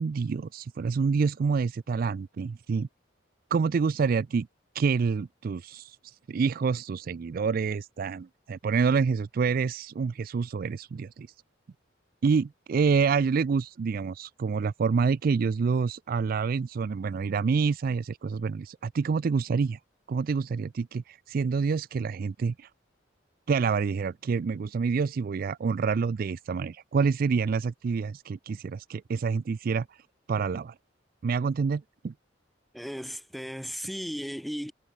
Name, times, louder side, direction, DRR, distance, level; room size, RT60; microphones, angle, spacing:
voice 1, 0.0-2.9 3.5-4.5 4.7-11.3 12.2-19.8 20.1-22.7 23.5-30.0 30.3-30.7 31.2-32.1, right 5 dB, 50° right, 0.3 m, -27 dB
voice 2, 32.7-34.7, equal, ahead, 1.8 m, -35 dB
head